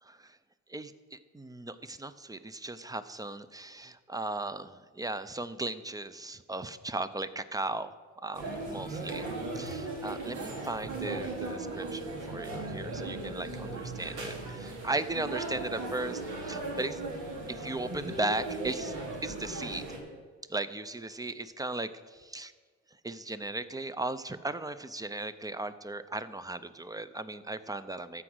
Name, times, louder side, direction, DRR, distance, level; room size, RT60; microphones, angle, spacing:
voice 1, 0.0-0.4 0.7-7.9 8.2-9.2 9.5-17.0 17.5-18.9 19.2-19.9 20.5-21.9 22.3-22.5 23.0-28.2, right 2 dB, 10° right, 13 dB, 0.6 m, -37 dB
sound 1, 8.3-20.0, right 2 dB, 80° right, 2.6 m, -37 dB
13.5 x 4.9 x 8.0 m, 1.5 s
cardioid pair, 90°, 30 cm